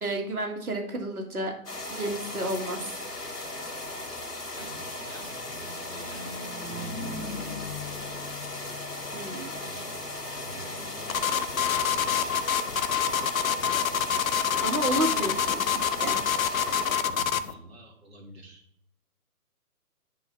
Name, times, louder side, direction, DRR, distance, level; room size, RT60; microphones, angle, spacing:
voice 1, 0.0-1.5 1.9-3.0 9.1-9.6 14.6-16.2, right 2 dB, 70° right, 2 dB, 2.1 m, -31 dB
sound 1, 1.7-17.0, left 2 dB, 80° left, 2.7 m, -37 dB
Car passing by / Truck, 2.7-16.3, left 3 dB, 10° left, 1.2 m, -45 dB
voice 2, 4.5-6.3 6.6-6.9 9.5-12.5 14.7-15.0 17.0-18.6, right 2 dB, 40° right, 0 dB, 1.9 m, -47 dB
sound 2, 11.1-17.5, left 8 dB, 60° left, 0.7 m, -26 dB
10.0 x 3.5 x 5.7 m, 0.68 s
figure-of-eight pair, 145°, 46 cm